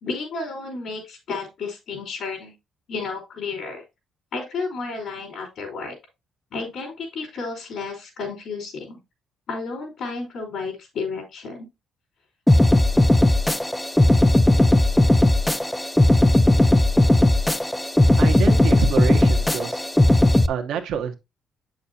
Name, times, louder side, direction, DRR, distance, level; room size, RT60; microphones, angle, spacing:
voice 1, 0.0-2.5 2.9-3.8 4.3-6.0 6.5-9.0 9.5-11.7, left 4 dB, 70° left, 3.9 m, -32 dB
sound 1, 12.5-20.5, left 1 dB, 10° left, 0.5 m, -17 dB
voice 2, 18.2-19.8 20.5-21.1, right 7 dB, 80° right, 1.0 m, -27 dB
8.2 x 6.4 x 2.8 m
cardioid pair, 90°, 0 cm